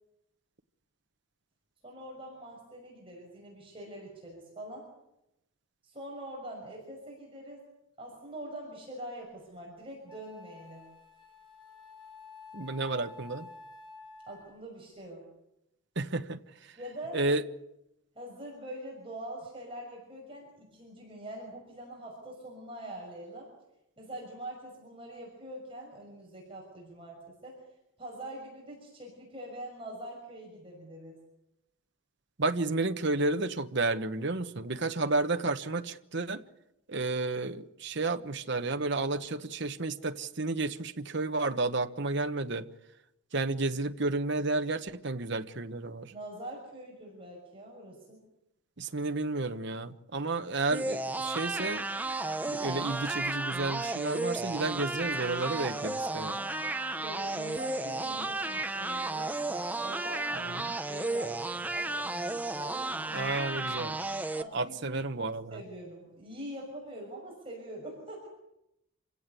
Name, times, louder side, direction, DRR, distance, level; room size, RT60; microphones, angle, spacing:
voice 1, 1.8-4.9 5.8-7.6 8.0-10.9 14.2-15.3 16.8-17.3 18.1-23.5 24.0-27.6 28.0-31.2 35.0-35.1 46.1-48.2 57.0-61.4 61.7-62.8 64.4-68.3, right 1 dB, 25° right, 6.2 m, -44 dB
Wind instrument woodwind instrument, 9.4-9.5 10.1-14.7, left 3 dB, 20° left, 5.5 m, -50 dB
voice 2, 12.5-13.5 16.0-16.4 17.1-17.4 32.4-36.4 36.9-42.6 43.3-46.1 48.8-51.9 52.4-56.4 63.1-64.0 64.5-65.6, right 3 dB, 55° right, 1.1 m, -31 dB
sound 1, 50.7-64.4, right 2 dB, 10° right, 0.8 m, -33 dB
27.0 x 17.0 x 8.4 m
head